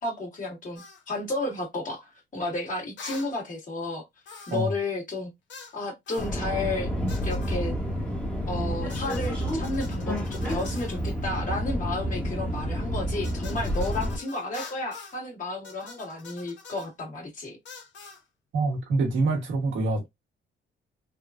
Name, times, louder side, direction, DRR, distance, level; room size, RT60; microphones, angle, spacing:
voice 1, 0.0-4.0 4.5-5.3 5.7-6.9 7.2-7.7 8.5-17.6, left 2 dB, 40° left, 1.7 m, -32 dB
sound 1, 0.8-1.0 3.0-3.3 4.3-4.7 5.5-5.8 6.1-6.3 7.1-7.6 8.9-11.0 13.2-15.2 15.6-16.9 17.7-18.2, left 4 dB, 70° left, 1.2 m, -45 dB
Subway metro underground, 6.2-14.2, equal, 5° left, 1.1 m, -29 dB
voice 2, 18.5-20.1, right 3 dB, 75° right, 1.3 m, -25 dB
3.5 x 2.3 x 2.4 m
cardioid pair, 90°, 20 cm